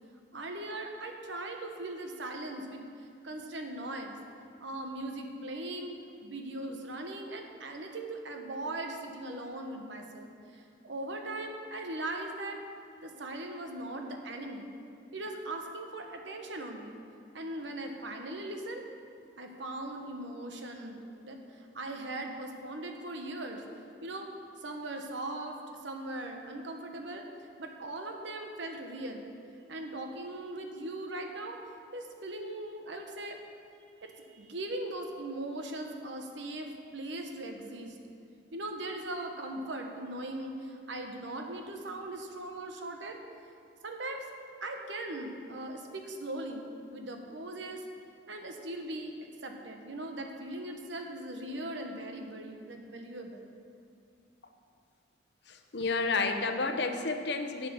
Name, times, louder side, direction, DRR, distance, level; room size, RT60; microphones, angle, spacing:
voice 1, 0.3-4.2 4.6-5.9 6.2-12.6 13.0-14.7 15.1-17.0 17.3-18.9 19.4-23.6 24.0-24.3 24.6-27.2 27.6-29.3 29.7-31.6 31.9-33.4 34.0-38.0 38.5-43.2 43.8-44.3 44.6-47.8 48.3-49.1 49.4-53.5, right 1 dB, 70° right, 3 dB, 1.1 m, -39 dB
voice 2, 55.5-57.7, left 3 dB, 60° left, 6 dB, 0.8 m, -31 dB
8.3 x 8.0 x 6.9 m, 2.3 s
head